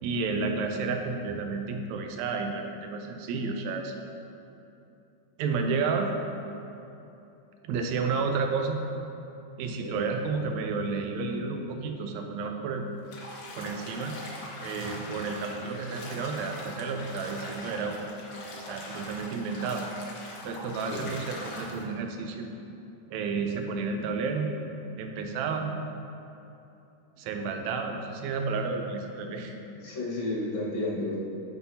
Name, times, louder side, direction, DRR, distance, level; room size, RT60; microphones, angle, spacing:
voice 1, 0.0-3.9 5.4-6.1 7.6-8.8 9.6-12.8 13.6-14.1 14.6-18.1 18.7-19.8 20.4-22.5 23.1-24.5 25.0-25.7 27.2-29.5 29.8-29.9, right 4 dB, 80° right, 4 dB, 1.7 m, -31 dB
Bathtub (filling or washing), 13.0-21.8, left 1 dB, 85° left, 1.1 m, -42 dB
voice 2, 29.7-31.2, left 2 dB, 60° left, -5 dB, 2.5 m, -32 dB
11.0 x 6.1 x 2.8 m, 2.9 s
omnidirectional pair, 3.8 m